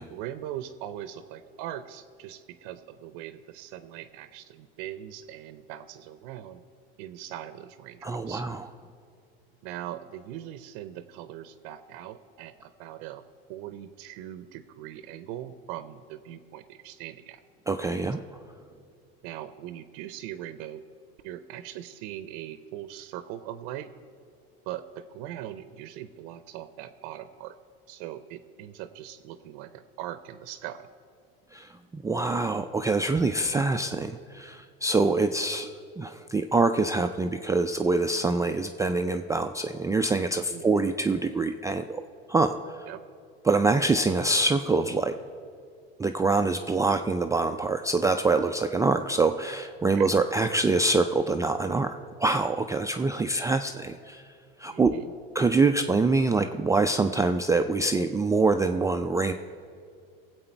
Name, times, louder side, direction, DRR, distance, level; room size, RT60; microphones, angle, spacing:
voice 1, 0.1-6.6 7.0-8.4 9.6-13.2 13.5-17.4 19.2-20.8 21.2-23.9 24.7-27.6 27.9-30.9 40.5-40.8 42.9-43.0 49.9-50.1 54.7-55.1, right 12 dB, 70° right, 12 dB, 0.6 m, -40 dB
voice 2, 8.0-8.6 17.7-18.2 31.5-35.7 36.0-42.0 42.3-42.9 43.4-45.2 46.0-54.2 54.6-54.9 55.3-59.3, right 3 dB, 10° right, 6 dB, 0.3 m, -25 dB
18.0 x 7.9 x 4.5 m, 2.4 s
supercardioid pair, 100°, 30 cm